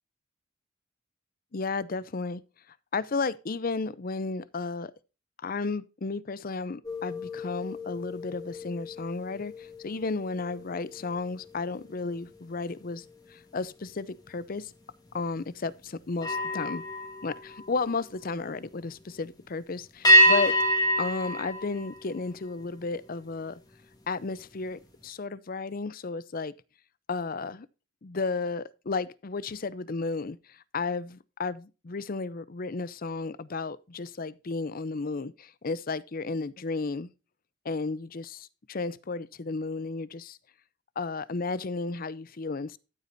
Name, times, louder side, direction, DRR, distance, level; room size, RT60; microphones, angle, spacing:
voice 1, 1.5-2.4 2.9-4.9 5.4-14.7 15.1-16.8 17.2-20.5 21.0-23.6 24.1-26.5 27.1-27.7 28.0-37.1 37.6-40.4 41.0-42.8, left 3 dB, 45° left, 0.6 m, -33 dB
sound 1, 6.8-12.4 12.9-13.2 16.1-18.3 20.0-22.6, equal, 20° left, 2.2 m, -27 dB
13.5 x 8.3 x 2.7 m
head